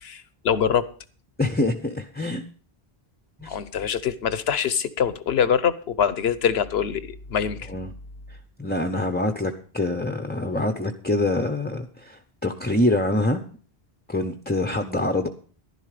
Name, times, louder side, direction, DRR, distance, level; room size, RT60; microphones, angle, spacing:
voice 1, 0.0-0.9 3.5-7.7, left 8 dB, 75° left, 1.1 m, -24 dB
voice 2, 1.4-2.4 3.4-3.6 7.7-7.9 8.6-13.4 14.1-15.3, left 1 dB, 10° left, 0.7 m, -25 dB
11.5 x 11.0 x 4.9 m
omnidirectional pair, 1.1 m